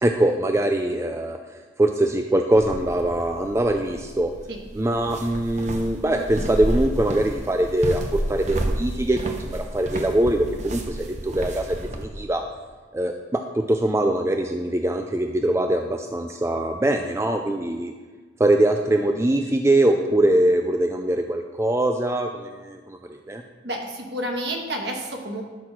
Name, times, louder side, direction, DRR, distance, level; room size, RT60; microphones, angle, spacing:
voice 1, 0.0-1.4 1.8-4.3 4.7-12.4 12.9-17.9 18.4-23.0 23.3-23.4, right 1 dB, 15° right, 4 dB, 0.4 m, -22 dB
sound 1, 2.5-12.0, right 1 dB, 35° right, 0.8 m, -31 dB
voice 2, 23.6-25.4, right 1 dB, 55° right, 1 dB, 1.5 m, -30 dB
12.5 x 4.7 x 6.0 m, 1.4 s
head